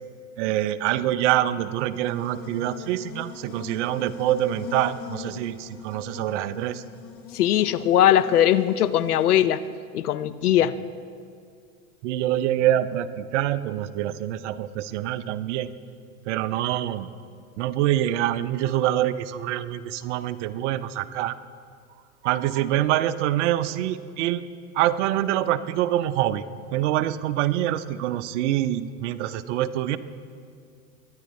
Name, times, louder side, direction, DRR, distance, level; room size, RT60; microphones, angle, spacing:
voice 1, 0.4-6.8 12.0-15.7 16.3-17.1 17.6-21.4 22.2-24.5 24.7-26.4 26.7-30.0, right 12 dB, 50° right, 14 dB, 0.6 m, -25 dB
Buzz, 1.6-9.7, left 7 dB, 30° left, 1.1 m, -42 dB
voice 2, 7.3-9.6 9.9-10.7, left 11 dB, 75° left, 14 dB, 0.7 m, -20 dB
23.0 x 10.5 x 3.2 m, 2.2 s
hypercardioid pair, 95°, 45 cm